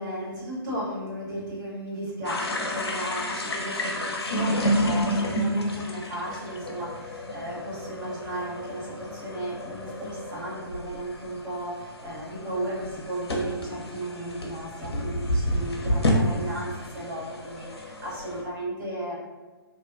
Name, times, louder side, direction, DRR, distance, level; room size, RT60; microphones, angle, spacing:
voice 1, 0.0-19.1, right 1 dB, 50° right, -7 dB, 1.4 m, -35 dB
sound 1, 2.2-18.4, equal, 80° left, 0.5 m, -30 dB
2.6 x 2.2 x 2.5 m, 1.3 s
figure-of-eight pair, 130°, 13 cm